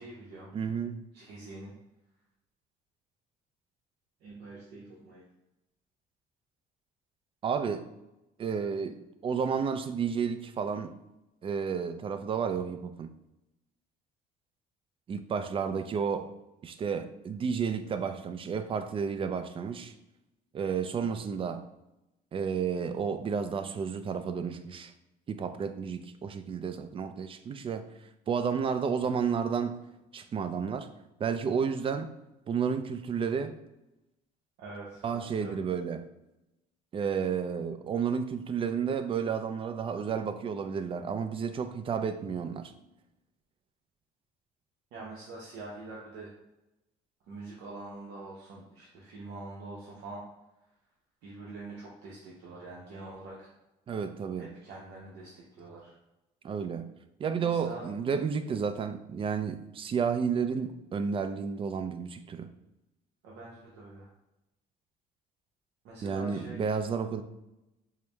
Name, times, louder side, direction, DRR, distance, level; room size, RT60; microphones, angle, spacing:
voice 1, 0.0-0.5 1.1-1.7 4.2-5.2 34.6-35.6 44.9-46.3 47.3-50.2 51.2-53.5 54.4-55.9 57.4-57.9 63.2-64.1 65.8-66.8, right 2 dB, 80° right, -4 dB, 0.8 m, -45 dB
voice 2, 0.5-1.0 7.4-7.9 8.4-10.9 11.4-13.1 15.1-16.3 16.6-19.9 20.5-21.6 22.3-24.9 25.3-27.9 28.3-29.8 30.1-30.9 31.2-32.1 32.5-33.6 35.0-36.1 36.9-42.7 53.9-54.5 56.4-56.9 57.2-62.5 66.0-67.2, right 6 dB, 30° right, 9 dB, 0.3 m, -31 dB
4.7 x 2.0 x 3.3 m, 0.94 s
cardioid pair, 110°, 17 cm